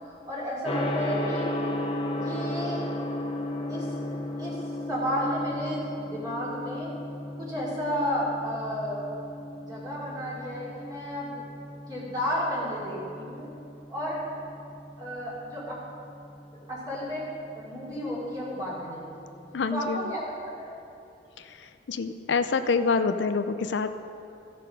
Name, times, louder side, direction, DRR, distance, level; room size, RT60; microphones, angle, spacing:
voice 1, 0.1-1.5 2.0-2.8 3.7-3.9 4.4-4.6 4.9-7.0 7.4-9.0 9.6-11.4 11.9-13.6 13.9-14.2 15.0-15.8 16.7-17.3 17.5-19.3 19.7-20.7, equal, 20° right, -8 dB, 2.8 m, -32 dB
Gong, 0.6-19.6, left 1 dB, 30° left, 1.1 m, -36 dB
voice 2, 19.5-20.1 21.9-23.9, left 4 dB, 75° left, 10 dB, 0.5 m, -26 dB
15.0 x 6.6 x 5.3 m, 2.7 s
head